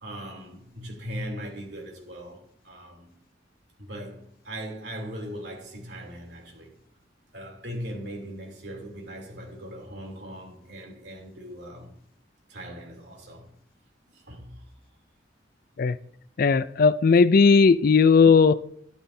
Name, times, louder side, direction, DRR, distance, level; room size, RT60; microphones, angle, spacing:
voice 1, 0.0-3.1 3.8-6.7 7.3-11.9 12.5-13.5 14.1-14.6, equal, 70° right, 3.1 m, -39 dB
voice 2, 16.4-18.5, left 5 dB, 55° left, 0.4 m, -17 dB
12.5 x 11.5 x 2.7 m
head